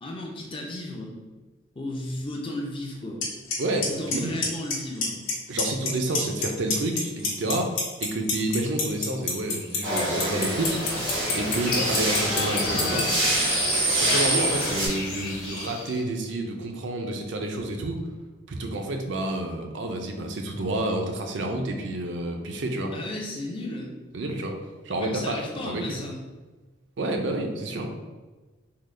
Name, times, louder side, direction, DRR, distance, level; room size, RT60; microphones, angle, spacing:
voice 1, 0.0-1.2 1.8-3.2 3.9-5.2 22.8-24.0 25.0-26.2, left 1 dB, 25° left, 0 dB, 0.5 m, -34 dB
Clock, 3.2-3.3 3.5-3.9 4.1-4.7 5.0-5.3 5.6-6.4 6.7-13.0, left 6 dB, 75° left, 0.9 m, -26 dB
voice 2, 3.6-4.4 5.5-11.0 11.3-13.1 13.8-18.0 18.5-22.9 24.1-24.6 24.8-26.0 27.0-27.9, right 1 dB, 60° right, 3 dB, 0.5 m, -29 dB
sound 1, 9.8-14.9, right 1 dB, 80° right, 1.1 m, -26 dB
sound 2, 10.5-16.0, left 2 dB, 45° left, 1.2 m, -32 dB
3.8 x 2.2 x 3.2 m, 1.3 s
head